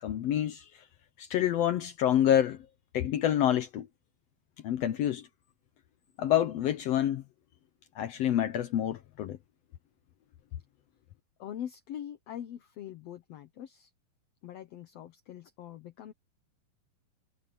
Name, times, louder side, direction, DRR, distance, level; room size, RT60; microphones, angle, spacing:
voice 1, 0.0-0.9 1.2-2.6 2.9-3.9 4.6-5.3 6.2-7.2 7.9-9.4, left 11 dB, 85° left, 1.4 m, -27 dB
voice 2, 11.4-13.9 14.4-16.1, left 10 dB, 70° left, 1.5 m, -43 dB
omnidirectional pair, 4.1 m